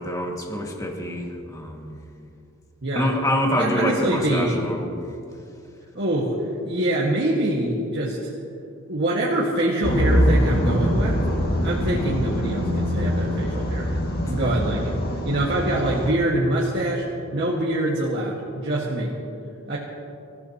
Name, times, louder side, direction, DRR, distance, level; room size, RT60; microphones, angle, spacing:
voice 1, 0.0-2.0 3.0-5.1 14.2-14.3, equal, 15° left, 0 dB, 1.9 m, -26 dB
voice 2, 2.8-3.1 3.6-4.6 5.9-6.3 6.6-8.3 8.9-11.2 11.6-13.9 14.2-15.0 15.3-17.0 17.3-19.2 19.7-19.8, right 1 dB, 55° right, -5 dB, 1.8 m, -24 dB
sound 1, 9.8-16.1, equal, 50° left, 2.0 m, -23 dB
26.5 x 15.0 x 2.9 m, 2.6 s
head